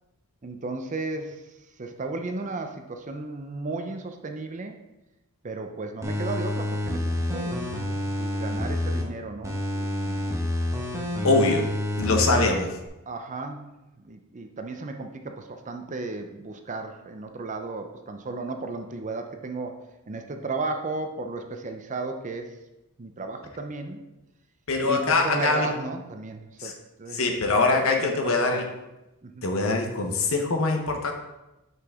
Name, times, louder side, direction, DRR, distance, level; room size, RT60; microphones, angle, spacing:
voice 1, 0.4-1.5 1.8-4.8 5.4-10.3 12.1-12.5 13.1-13.7 14.0-19.8 20.1-22.5 23.0-24.0 24.8-28.7 29.2-29.5, right 3 dB, 35° right, 5 dB, 0.6 m, -35 dB
sound 1, 6.0-9.0 9.4-12.5 12.9-13.0, left 1 dB, 15° right, 1.0 m, -28 dB
voice 2, 11.2-11.7 12.0-12.7 24.7-25.7 26.6-26.7 27.1-28.6 29.4-31.1, left 3 dB, 65° left, 3 dB, 1.0 m, -23 dB
6.0 x 5.7 x 3.6 m, 0.97 s
head